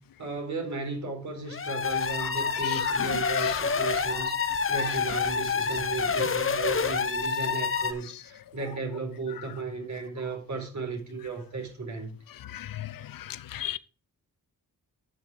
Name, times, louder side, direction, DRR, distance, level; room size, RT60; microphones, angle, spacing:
voice 1, 0.2-12.2, right 4 dB, 50° right, 4.4 m, -35 dB
sound 1, 1.5-7.9, left 5 dB, 35° left, 0.9 m, -28 dB
voice 2, 12.5-12.9 13.5-13.8, left 12 dB, 70° left, 0.6 m, -33 dB
8.4 x 6.1 x 6.2 m
cardioid pair, 70°, 36 cm